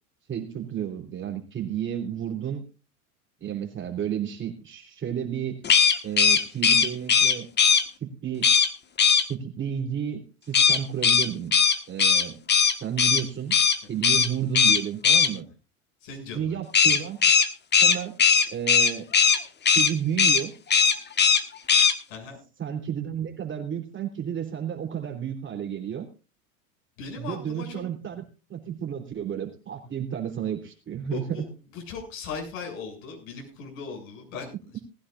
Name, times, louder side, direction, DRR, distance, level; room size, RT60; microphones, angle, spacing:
voice 1, 0.3-2.6 3.4-5.6 6.0-7.5 8.0-8.5 9.3-11.5 11.9-12.4 12.8-13.6 13.9-15.5 16.3-17.2 17.8-18.2 18.5-19.1 19.7-20.5 22.6-26.1 27.2-28.2 28.5-31.5, right 9 dB, 25° right, 4 dB, 3.6 m, -32 dB
sound 1, 5.6-7.8 8.4-8.7 9.0-9.2 10.5-13.2 13.5-13.8 14.0-14.3 14.5-15.3 16.7-19.4 19.6-19.9 20.2-20.4 20.7-21.4 21.7-21.9, left 6 dB, 25° left, 1.5 m, -19 dB
voice 2, 16.0-16.6 22.1-22.4 27.0-27.8 31.0-31.5 31.7-34.8, left 5 dB, 60° left, 1 dB, 7.5 m, -38 dB
19.5 x 15.5 x 2.5 m, 0.31 s
hypercardioid pair, 85°, 44 cm